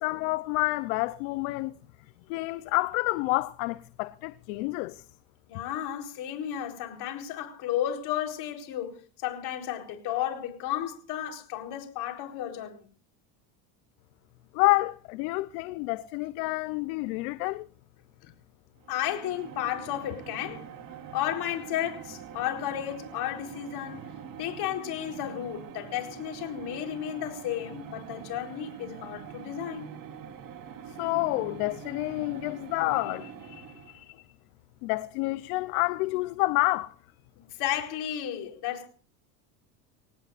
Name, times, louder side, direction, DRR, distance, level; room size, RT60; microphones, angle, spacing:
voice 1, 0.0-1.7 2.3-5.0 14.5-17.7 31.0-34.2 34.8-36.9, left 21 dB, 75° left, 0.9 m, -29 dB
voice 2, 5.5-12.8 18.2-18.3 18.9-20.7 21.1-29.9 37.6-38.9, left 11 dB, 60° left, 4.4 m, -33 dB
sound 1, 18.8-34.1, right 8 dB, 50° right, 4.1 m, -44 dB
26.0 x 18.5 x 2.6 m
supercardioid pair, 100°, 44 cm